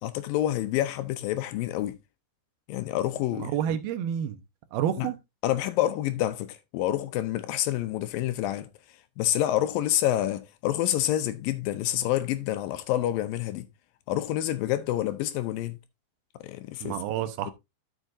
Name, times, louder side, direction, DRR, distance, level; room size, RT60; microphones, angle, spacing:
voice 1, 0.0-2.0 2.7-3.5 5.0-5.1 5.4-8.7 9.2-13.7 14.1-15.8 16.4-17.0 17.5-17.6, left 13 dB, 80° left, 2.3 m, -28 dB
voice 2, 3.3-4.4 4.7-5.2 16.8-17.5, right 10 dB, 85° right, 2.8 m, -29 dB
12.0 x 6.3 x 2.6 m
omnidirectional pair, 4.4 m